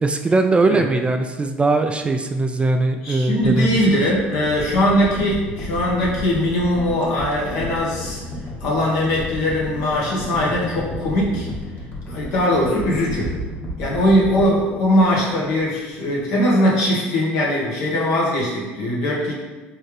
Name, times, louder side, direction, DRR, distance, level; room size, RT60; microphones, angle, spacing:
voice 1, 0.0-3.8, right 3 dB, 20° right, 5 dB, 0.3 m, -20 dB
voice 2, 3.0-8.2 8.6-11.5 12.1-13.3 13.8-19.3, left 1 dB, 65° left, -5 dB, 1.5 m, -20 dB
sound 1, 3.4-15.7 16.1-16.2, left 1 dB, 35° left, 1.4 m, -32 dB
4.4 x 3.5 x 3.2 m, 1.3 s
supercardioid pair, 85°, 6 cm